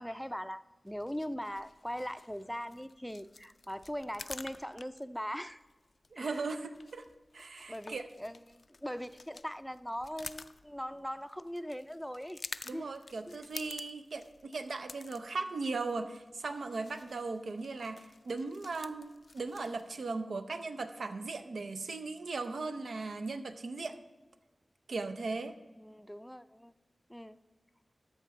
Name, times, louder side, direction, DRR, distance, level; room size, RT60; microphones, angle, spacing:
voice 1, 0.0-5.6 6.2-6.5 7.5-12.4 12.7-12.9 13.3-13.4 25.8-26.7 27.1-27.4, equal, 5° left, 12 dB, 0.4 m, -40 dB
sound 1, 0.9-20.0, left 3 dB, 70° left, 0.3 m, -51 dB
voice 2, 6.1-7.0 7.3-8.1 12.7-24.0 24.9-25.5, right 3 dB, 85° right, 9 dB, 0.5 m, -38 dB
13.0 x 5.8 x 4.1 m, 1.2 s
cardioid pair, 40°, 0 cm